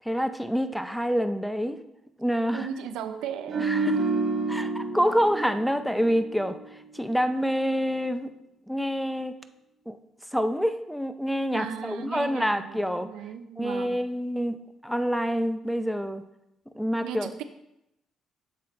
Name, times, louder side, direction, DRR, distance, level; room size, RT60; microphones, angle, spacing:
voice 1, 0.1-1.8 2.2-2.7 3.6-4.0 4.5-6.6 6.9-8.3 8.7-9.3 9.9-10.0 10.3-13.1 13.6-16.2 16.7-17.4, equal, ahead, 10 dB, 0.4 m, -27 dB
voice 2, 2.5-3.9 11.5-14.0 17.0-17.4, right 8 dB, 85° right, 9 dB, 0.4 m, -36 dB
sound 1, 3.5-6.8 7.1-7.3, right 4 dB, 50° right, 0.9 m, -29 dB
7.4 x 3.9 x 4.3 m, 0.87 s
cardioid pair, 85°, 0 cm